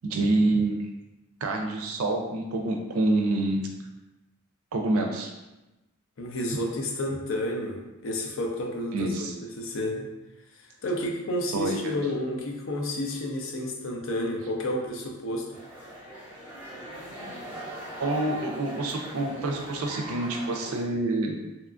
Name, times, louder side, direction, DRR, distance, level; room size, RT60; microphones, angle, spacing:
voice 1, 0.0-0.8 1.4-3.7 4.7-5.3 8.9-9.3 11.5-11.9 18.0-21.4, right 2 dB, 90° right, 2 dB, 0.4 m, -27 dB
voice 2, 6.2-9.3 9.6-10.1 10.5-15.6, left 1 dB, 65° left, 1 dB, 0.5 m, -31 dB
sound 1, 15.5-20.8, right 1 dB, 10° right, 0.9 m, -41 dB
2.8 x 2.4 x 2.4 m, 1.0 s
head